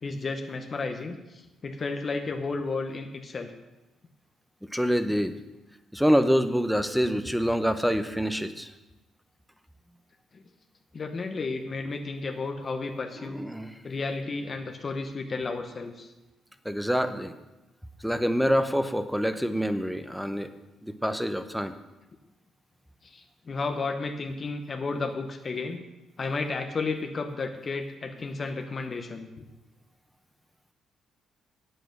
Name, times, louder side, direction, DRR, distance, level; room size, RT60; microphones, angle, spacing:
voice 1, 0.0-3.5 10.3-10.4 10.9-13.4 13.8-16.1 21.1-21.2 23.0-25.8 26.2-29.4, left 3 dB, 40° left, 5 dB, 0.9 m, -33 dB
voice 2, 4.7-5.4 5.9-8.7 13.2-13.8 16.6-17.3 18.0-20.5 20.8-21.7, equal, ahead, 10 dB, 0.8 m, -26 dB
8.6 x 7.9 x 6.6 m, 1.0 s
cardioid pair, 90°, 0 cm